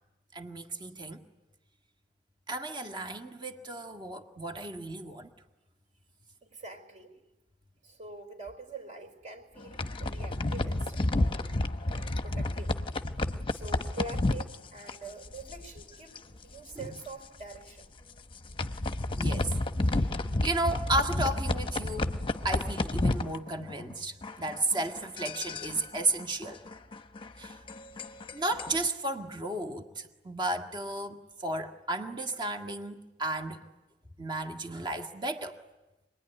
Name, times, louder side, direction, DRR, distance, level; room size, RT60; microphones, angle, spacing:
voice 1, 0.3-1.2 2.5-5.3 16.8-17.0 19.2-19.6 19.9-20.1 20.4-26.6 27.4-27.6 28.3-33.7 34.2-35.6, right 2 dB, 25° right, 5 dB, 1.8 m, -33 dB
voice 2, 6.4-7.2 7.8-11.3 11.8-12.8 13.2-17.9, right 3 dB, 45° right, 5 dB, 4.3 m, -45 dB
sound 1, 9.6-15.9 16.2-16.4 16.7-16.8 17.4-17.6 18.2-24.0 24.2-28.9, left 2 dB, 30° left, 0.9 m, -31 dB
26.0 x 21.0 x 10.0 m, 1.1 s
head